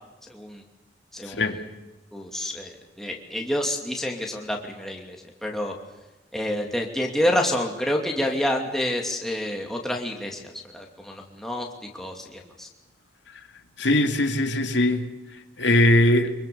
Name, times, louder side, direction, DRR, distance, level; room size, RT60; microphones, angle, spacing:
voice 1, 0.3-0.6 1.1-1.4 2.1-5.2 5.4-5.7 6.3-10.5 10.7-11.7 11.9-12.7, left 1 dB, ahead, 0 dB, 2.6 m, -28 dB
voice 2, 1.3-1.6 13.8-15.1 15.6-16.3, left 1 dB, 80° left, 5 dB, 2.2 m, -20 dB
25.5 x 23.0 x 7.1 m, 1.1 s
head